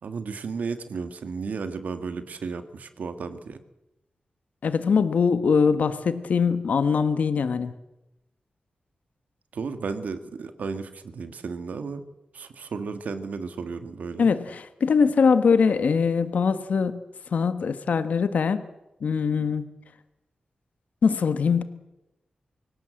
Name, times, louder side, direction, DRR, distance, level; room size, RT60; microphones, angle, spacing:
voice 1, 0.0-3.6 9.5-12.0 12.3-14.3, right 5 dB, 80° right, 9 dB, 1.8 m, -33 dB
voice 2, 4.6-7.7 14.2-17.0 17.3-18.6 19.0-19.7 21.0-21.6, left 5 dB, 75° left, 11 dB, 1.4 m, -22 dB
24.5 x 17.0 x 7.8 m, 0.94 s
wide cardioid pair, 155°, 3 cm